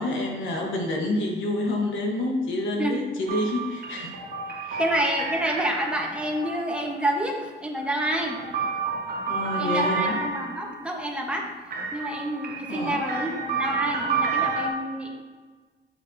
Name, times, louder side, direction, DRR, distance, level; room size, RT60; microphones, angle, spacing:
voice 1, 0.0-4.1 4.6-4.8 9.3-10.2 12.7-13.0, left 2 dB, 75° left, 1 dB, 1.2 m, -28 dB
sound 1, 3.3-7.1 7.8-10.9 11.7-14.7, right 4 dB, 50° right, 0.9 m, -30 dB
voice 2, 4.8-8.4 9.6-11.4 11.9-15.1, right 1 dB, 5° right, 0 dB, 1.0 m, -28 dB
7.3 x 5.3 x 2.7 m, 1.4 s
cardioid pair, 90°, 20 cm